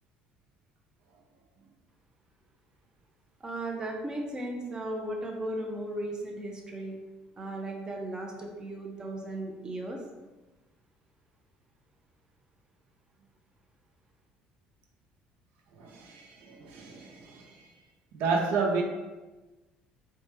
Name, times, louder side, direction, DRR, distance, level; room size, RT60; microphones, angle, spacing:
voice 1, 3.4-7.0 7.4-10.0, right 1 dB, 25° right, 0.6 m, -36 dB
voice 2, 15.7-17.6 18.1-18.8, right 4 dB, 75° right, 0.5 m, -31 dB
4.4 x 2.2 x 3.3 m
cardioid pair, 100°, 3 cm